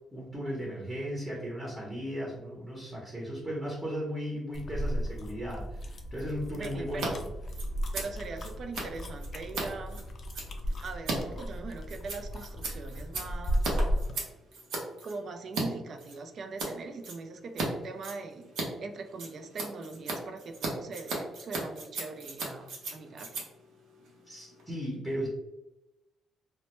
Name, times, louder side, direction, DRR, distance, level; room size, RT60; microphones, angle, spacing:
voice 1, 0.1-7.3 24.2-25.3, equal, 10° right, -5 dB, 0.7 m, -36 dB
sound 1, 4.5-14.2, equal, 50° left, 0.4 m, -35 dB
voice 2, 6.6-7.2 7.9-10.0 10.8-13.8 15.0-18.4 18.8-23.5, right 3 dB, 55° right, 6 dB, 0.3 m, -41 dB
Scissors, 6.9-7.1 7.3-15.6 16.0-16.7 17.0-17.7 17.9-24.7, right 3 dB, 85° right, 0.7 m, -37 dB
2.1 x 2.1 x 2.9 m, 0.95 s
cardioid pair, 90°, 0 cm